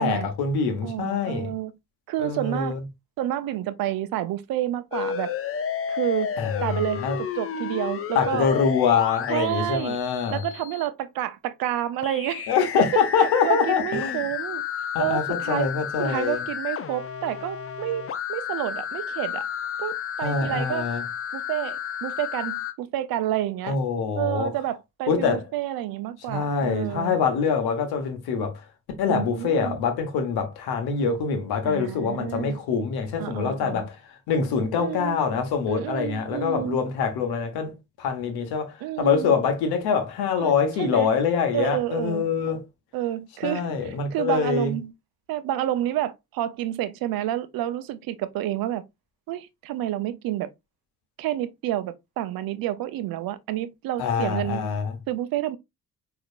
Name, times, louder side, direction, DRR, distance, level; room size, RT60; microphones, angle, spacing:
voice 1, 0.0-1.5 2.2-2.8 6.4-7.2 8.1-10.4 12.5-14.2 14.9-16.4 20.2-21.0 23.7-24.5 25.1-25.4 26.3-28.6 29.0-34.0 34.3-42.6 43.4-44.7 54.0-55.0, left 6 dB, 65° left, 1.3 m, -25 dB
voice 2, 0.8-1.7 2.1-2.7 3.2-5.3 5.9-6.3 6.6-8.5 9.3-10.0 10.3-12.5 12.9-14.6 15.0-15.7 16.0-19.5 19.8-20.9 21.3-23.8 24.1-27.2 29.1-29.8 31.6-32.6 33.2-33.9 34.8-35.2 35.7-36.8 38.8-39.4 40.4-40.5 40.8-41.1 41.5-42.2 42.9-44.9 45.3-48.8 49.3-50.5 51.2-54.6 55.1-55.6, right 13 dB, 55° right, 0.7 m, -29 dB
sound 1, 4.9-10.9 12.0-22.7, left 8 dB, 35° left, 0.7 m, -32 dB
4.8 x 4.3 x 2.4 m
figure-of-eight pair, 40°, 42 cm